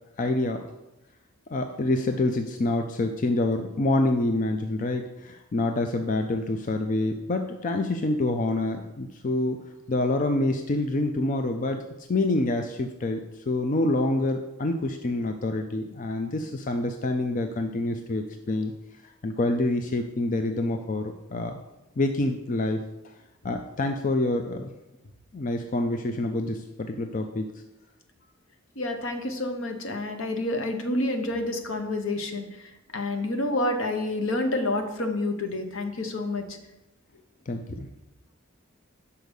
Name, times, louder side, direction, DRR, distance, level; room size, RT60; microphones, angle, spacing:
voice 1, 0.2-0.7 1.5-9.6 9.9-11.8 12.1-18.7 19.2-21.6 22.0-22.8 23.4-24.7 25.3-27.5 37.5-37.9, left 2 dB, 40° left, 6 dB, 0.4 m, -27 dB
voice 2, 28.8-36.4, left 2 dB, 75° left, 6 dB, 1.0 m, -29 dB
5.6 x 5.2 x 6.3 m, 0.97 s
head